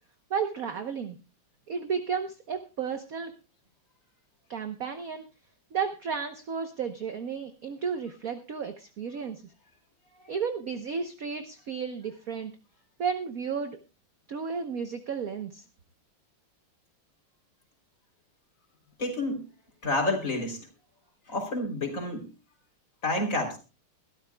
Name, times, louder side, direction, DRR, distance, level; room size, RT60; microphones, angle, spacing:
voice 1, 0.3-1.2 1.7-3.3 4.5-5.3 5.7-9.4 10.3-12.5 13.0-13.8 14.3-15.6, right 6 dB, 50° right, 8 dB, 1.2 m, -33 dB
voice 2, 19.0-19.4 19.8-20.6 21.3-22.3 23.0-23.6, left 2 dB, 35° left, 2 dB, 3.7 m, -29 dB
22.5 x 12.5 x 2.3 m, 0.32 s
omnidirectional pair, 2.3 m